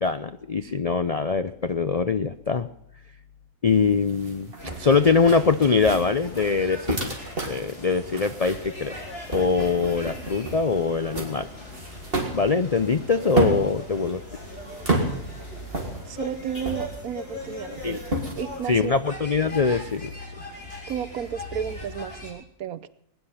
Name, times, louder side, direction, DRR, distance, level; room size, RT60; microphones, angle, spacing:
voice 1, 0.0-2.7 3.6-7.1 7.5-8.9 9.3-11.5 12.3-14.2 17.8-18.0 18.7-20.1, left 5 dB, 75° left, 11 dB, 0.3 m, -23 dB
sound 1, 3.7-18.7, right 2 dB, 35° right, 3.4 m, -33 dB
sound 2, 4.6-22.3, left 1 dB, 40° left, 4.6 m, -40 dB
voice 2, 16.1-18.0 18.4-19.0 20.9-22.9, right 9 dB, 70° right, 14 dB, 1.3 m, -32 dB
20.5 x 10.5 x 5.7 m, 0.75 s
omnidirectional pair, 1.6 m